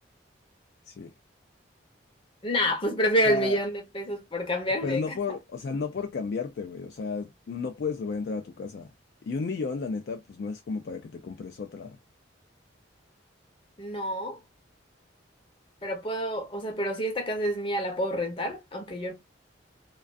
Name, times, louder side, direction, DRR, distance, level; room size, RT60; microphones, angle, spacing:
voice 1, 2.4-5.2 13.8-14.4 15.8-19.1, equal, 25° left, 0.7 m, -28 dB
voice 2, 3.3-3.6 4.8-8.9 9.2-12.0, left 4 dB, 55° left, 0.3 m, -33 dB
2.4 x 2.2 x 2.4 m
head